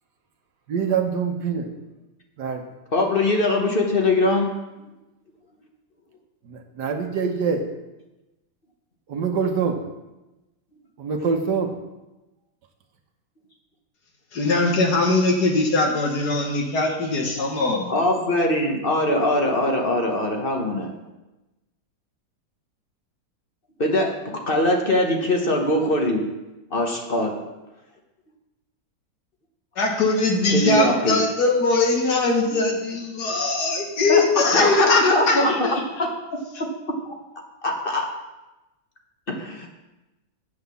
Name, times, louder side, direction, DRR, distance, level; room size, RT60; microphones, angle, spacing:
voice 1, 0.7-1.7 2.4-2.6 6.4-7.7 9.1-9.8 11.0-11.7, right 6 dB, 75° right, 4 dB, 1.6 m, -24 dB
voice 2, 2.9-4.5 17.9-20.9 23.8-26.3 26.7-27.4 30.5-31.2 34.1-36.1 36.6-36.7 37.6-38.0 39.3-39.7, left 1 dB, 35° left, 1 dB, 1.1 m, -22 dB
voice 3, 14.3-17.9 29.8-35.7, left 3 dB, 65° left, 2 dB, 1.9 m, -21 dB
8.4 x 5.8 x 6.9 m, 1.0 s
omnidirectional pair, 1.9 m